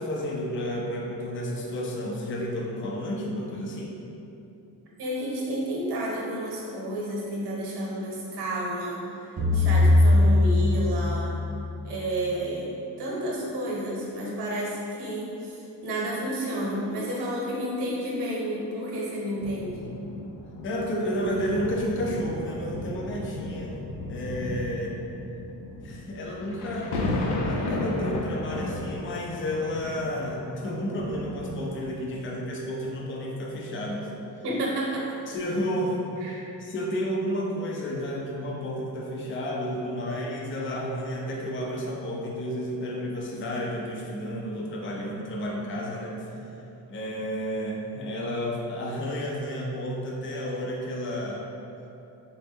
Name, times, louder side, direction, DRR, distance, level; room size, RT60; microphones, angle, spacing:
voice 1, 0.0-3.9 20.6-23.8 24.1-25.0 25.8-26.9 27.4-34.1 35.3-36.0 36.6-46.3 46.9-51.4, equal, 30° left, -2 dB, 0.4 m, -31 dB
voice 2, 5.0-11.4 11.8-12.7 13.0-19.8 34.4-35.2 36.2-36.4, right 1 dB, 90° right, -4 dB, 0.9 m, -31 dB
sound 1, 9.4-11.8, left 2 dB, 20° right, 0.5 m, -20 dB
sound 2, 19.4-32.2 32.8-33.0, left 2 dB, 85° left, 0.6 m, -34 dB
3.9 x 2.1 x 3.5 m, 2.8 s
cardioid pair, 140°, 39 cm